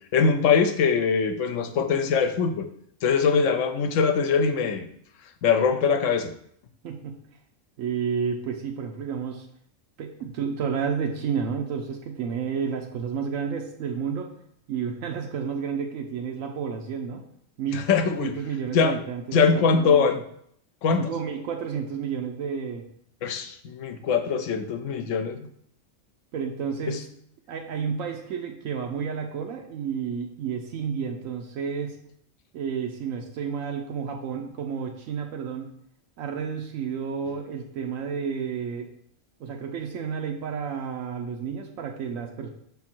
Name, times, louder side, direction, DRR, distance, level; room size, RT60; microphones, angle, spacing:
voice 1, 0.1-2.7 3.0-4.9 5.4-6.3 17.7-18.3 18.7-19.0 19.3-20.2 20.8-21.1 23.2-25.4 26.9-27.0, left 5 dB, 80° left, 8 dB, 1.0 m, -22 dB
voice 2, 6.8-7.2 7.8-9.5 10.0-14.3 14.7-17.2 17.6-20.1 21.0-22.8 26.3-27.0 27.5-32.0 32.5-35.7 36.2-38.9 39.4-42.5, right 6 dB, 85° right, 2 dB, 1.1 m, -31 dB
6.1 x 3.7 x 4.4 m, 0.69 s
omnidirectional pair, 1.3 m